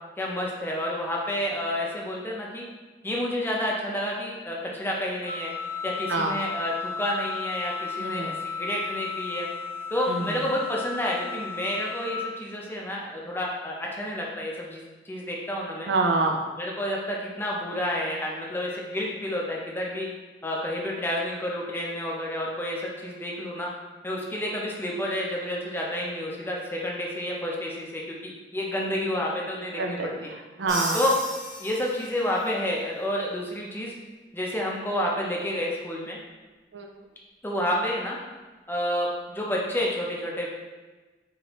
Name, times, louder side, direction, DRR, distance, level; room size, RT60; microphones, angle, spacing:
voice 1, 0.2-2.6 3.0-5.5 5.8-9.5 9.9-15.9 16.6-20.1 20.4-23.7 24.0-30.3 30.9-31.1 31.6-33.9 34.3-36.2 37.4-38.2 38.7-40.5, left 1 dB, 10° left, -3 dB, 0.6 m, -30 dB
Wind instrument woodwind instrument, 5.3-12.2, left 5 dB, 60° left, 0.8 m, -34 dB
voice 2, 8.0-8.3 10.1-10.4 15.9-16.4 29.7-31.0 36.7-36.9, right 3 dB, 80° right, 2 dB, 0.5 m, -27 dB
Crash cymbal, 30.7-32.4, right 1 dB, 15° right, 0.9 m, -35 dB
4.9 x 2.6 x 3.0 m, 1.3 s
head